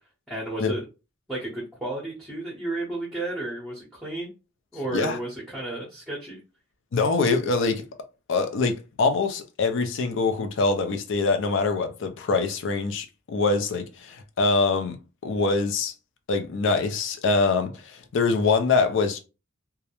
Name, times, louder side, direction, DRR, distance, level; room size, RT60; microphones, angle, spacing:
voice 1, 0.3-0.8 1.3-4.3 4.7-6.4, right 2 dB, ahead, 0.7 m, -32 dB
voice 2, 6.9-7.9 8.3-15.0 15.2-15.9 16.3-19.2, left 3 dB, 65° left, 0.4 m, -24 dB
2.3 x 2.0 x 2.9 m
head